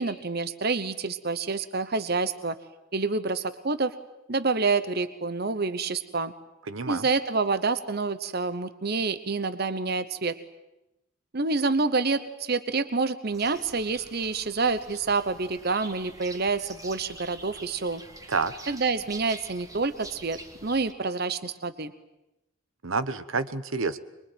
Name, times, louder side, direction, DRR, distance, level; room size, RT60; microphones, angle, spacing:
voice 1, 0.0-2.6 2.9-3.9 4.3-6.3 6.9-10.3 11.3-18.0 18.7-21.9, right 4 dB, 50° right, 12 dB, 1.0 m, -28 dB
voice 2, 6.7-7.1 18.3-18.5 22.8-24.0, right 4 dB, 75° right, 13 dB, 1.2 m, -28 dB
sound 1, 13.3-20.9, right 2 dB, 15° right, 1.9 m, -46 dB
25.0 x 23.0 x 9.3 m, 0.93 s
head